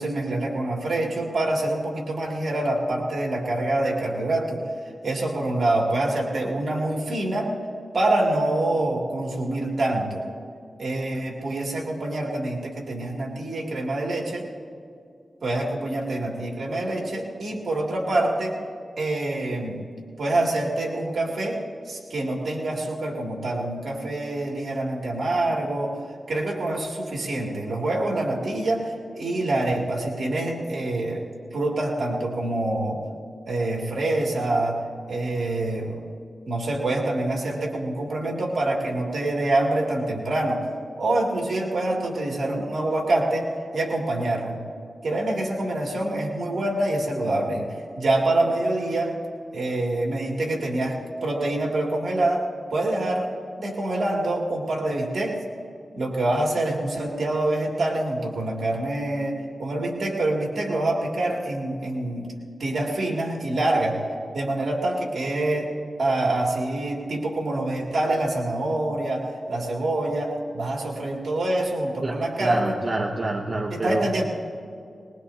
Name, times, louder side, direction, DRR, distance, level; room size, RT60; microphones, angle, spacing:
voice 1, 0.0-4.6 5.0-7.5 7.9-10.2 10.8-14.5 15.4-18.6 19.0-19.8 20.2-26.0 26.3-31.2 31.5-33.0 33.4-34.8 35.1-36.0 36.5-40.7 41.0-43.5 43.7-44.6 45.0-47.7 48.0-49.2 49.5-52.5 52.7-53.3 53.6-55.4 55.9-62.3 62.6-64.0 64.3-65.7 66.0-72.7 73.7-74.2, right 2 dB, 70° right, -2 dB, 2.6 m, -26 dB
voice 2, 72.0-74.1, right 2 dB, 45° right, 2 dB, 0.9 m, -27 dB
21.5 x 21.0 x 2.8 m, 2.4 s
cardioid pair, 65°, 0 cm